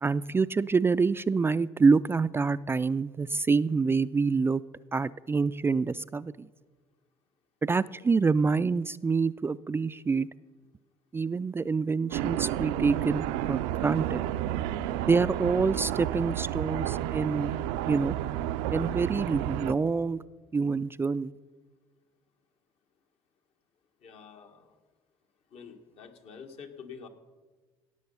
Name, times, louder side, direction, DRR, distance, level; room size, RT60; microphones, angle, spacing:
voice 1, 0.0-4.6 4.9-6.5 7.6-10.3 11.1-14.2 15.1-17.5 17.9-18.2 18.7-20.2 20.5-21.3, right 4 dB, 20° right, 15 dB, 0.3 m, -26 dB
sound 1, 12.1-19.7, right 12 dB, 80° right, 0.5 m, -31 dB
voice 2, 24.0-24.8 25.5-27.1, left 6 dB, 60° left, 5 dB, 1.7 m, -47 dB
17.0 x 6.8 x 5.6 m, 1.4 s
hypercardioid pair, 70°, 12 cm